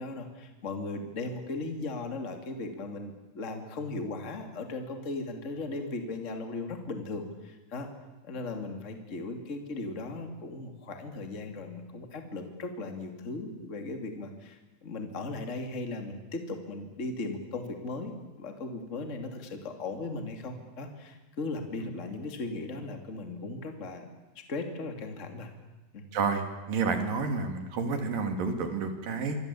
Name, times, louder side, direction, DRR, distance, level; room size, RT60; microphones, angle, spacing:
voice 1, 0.0-7.9 8.2-24.1 24.3-25.5 25.9-26.1, left 3 dB, 20° left, 5 dB, 2.2 m, -37 dB
voice 2, 26.1-29.4, right 4 dB, 50° right, 6 dB, 3.9 m, -30 dB
26.0 x 24.0 x 8.6 m, 1.1 s
omnidirectional pair, 5.4 m